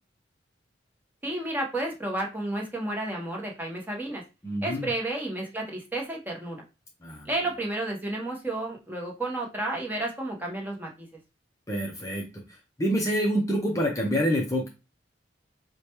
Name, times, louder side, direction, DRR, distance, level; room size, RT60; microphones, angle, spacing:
voice 1, 1.2-4.2 4.6-6.6 7.2-11.1, right 1 dB, 10° right, -1 dB, 1.0 m, -31 dB
voice 2, 4.4-4.9 7.0-7.3 11.7-14.7, equal, 15° left, -1 dB, 0.6 m, -27 dB
4.9 x 2.2 x 3.0 m, 0.28 s
head